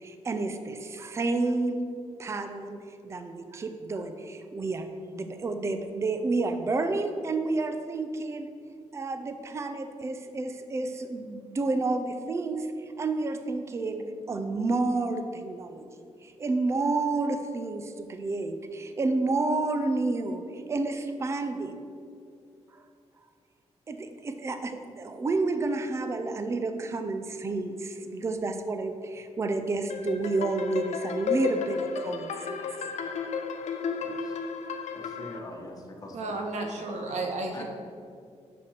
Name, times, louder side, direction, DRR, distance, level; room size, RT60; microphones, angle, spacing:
voice 1, 0.0-1.9 2.2-2.8 3.0-8.5 8.9-21.8 22.7-22.8 23.9-32.6, right 3 dB, 25° right, 7 dB, 0.4 m, -30 dB
sound 1, 29.9-35.4, left 5 dB, 85° left, 0.7 m, -33 dB
voice 2, 34.0-34.4 34.9-36.4 37.5-37.6, left 2 dB, 30° left, 0 dB, 1.2 m, -43 dB
voice 3, 36.1-37.6, right 2 dB, 80° right, 3 dB, 1.2 m, -32 dB
6.1 x 6.0 x 6.5 m, 2.4 s
wide cardioid pair, 180°, 12 cm